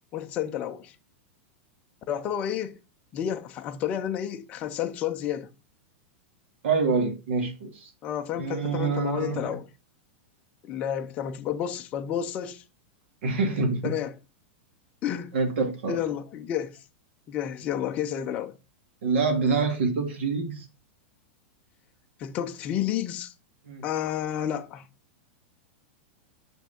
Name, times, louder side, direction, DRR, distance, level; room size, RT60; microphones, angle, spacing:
voice 1, 0.1-0.9 2.1-2.8 3.1-5.5 8.0-9.6 10.6-12.6 13.8-14.1 15.0-15.3 15.9-16.8 17.3-18.5 22.2-23.3 23.8-24.8, left 10 dB, 20° left, 0.5 m, -30 dB
voice 2, 6.6-7.9 8.3-9.5 13.2-13.9 15.3-16.0 19.0-20.7 23.6-23.8, right 4 dB, 65° right, 2.5 m, -26 dB
6.1 x 5.8 x 4.2 m
supercardioid pair, 180°, 7 cm